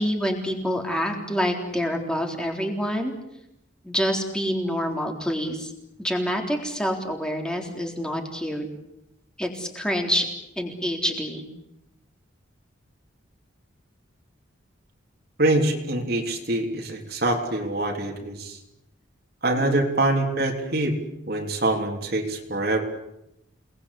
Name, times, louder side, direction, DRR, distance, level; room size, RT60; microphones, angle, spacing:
voice 1, 0.0-3.1 3.8-5.7 6.0-8.7 9.4-10.3 10.6-11.4 19.6-19.9, equal, 5° left, 2 dB, 3.7 m, -27 dB
voice 2, 15.4-18.6 19.4-20.9 21.3-22.8, right 2 dB, 50° right, 1 dB, 3.3 m, -24 dB
29.0 x 20.0 x 8.4 m, 0.83 s
head